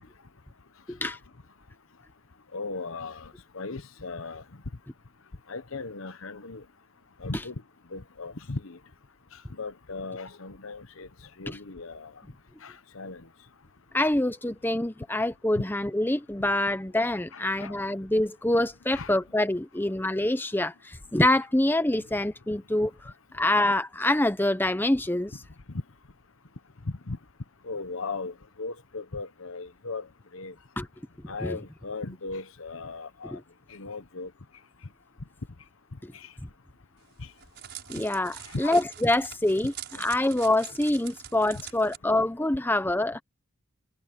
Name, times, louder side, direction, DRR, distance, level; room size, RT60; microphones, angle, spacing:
voice 1, 2.5-4.4 5.5-6.6 7.2-7.6 7.9-8.8 9.6-11.1 11.4-12.1 12.6-13.3 15.6-15.7 17.3-17.8 18.9-19.1 25.7-25.8 26.8-27.2 27.6-30.1 30.3-30.5 31.3-33.4 33.7-34.3 36.1-36.3 37.2-37.3 38.4-38.8 40.0-40.1, left 3 dB, 65° left, 1.1 m, -37 dB
voice 2, 13.9-22.9 23.3-25.3 30.8-30.9 31.4-31.6 33.3-33.4 36.0-36.1 37.9-39.7 40.0-43.2, left 1 dB, 10° left, 0.7 m, -25 dB
Crackle, 37.0-42.0, right 10 dB, 50° right, 7.4 m, -44 dB
head